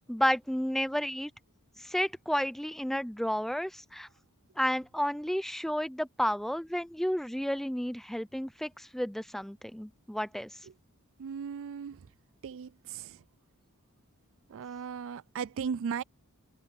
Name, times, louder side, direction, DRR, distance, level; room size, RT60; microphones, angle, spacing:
voice 1, 0.1-1.3 1.8-4.1 4.6-10.5, equal, ahead, 0.5 m, -31 dB
voice 2, 11.2-12.0 12.4-13.1 14.5-16.0, right 6 dB, 60° right, 0.4 m, -36 dB
head